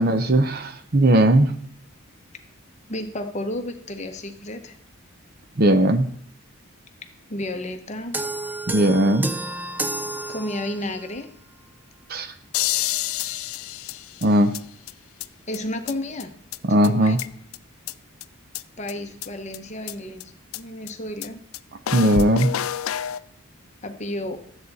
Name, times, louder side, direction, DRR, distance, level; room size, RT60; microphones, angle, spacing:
voice 1, 0.0-1.5 5.6-6.1 8.7-9.3 12.1-12.3 14.2-14.5 16.7-17.2 21.9-22.5, right 1 dB, 45° right, 10 dB, 0.7 m, -18 dB
voice 2, 2.9-4.8 7.3-8.2 10.3-11.3 15.5-16.3 16.7-17.2 18.8-21.4 23.8-24.4, left 1 dB, 30° left, 7 dB, 0.9 m, -32 dB
sound 1, 8.1-11.0, right 2 dB, 10° right, 0.3 m, -30 dB
sound 2, 12.5-14.6 14.9-15.0 15.2-15.3 15.5-15.6 15.9-16.0 16.2-16.3 16.5-16.6 16.8-17.6 17.9-18.0 18.2-18.3 18.5-18.6 18.9-19.0 19.2-19.3 19.5-19.6 19.9-20.0 20.2-20.3 20.5-20.6 20.9-21.0 21.2-21.3 21.5-21.6 21.9-23.2, left 11 dB, 70° left, 0.4 m, -28 dB
13.0 x 8.0 x 4.1 m, 0.63 s
head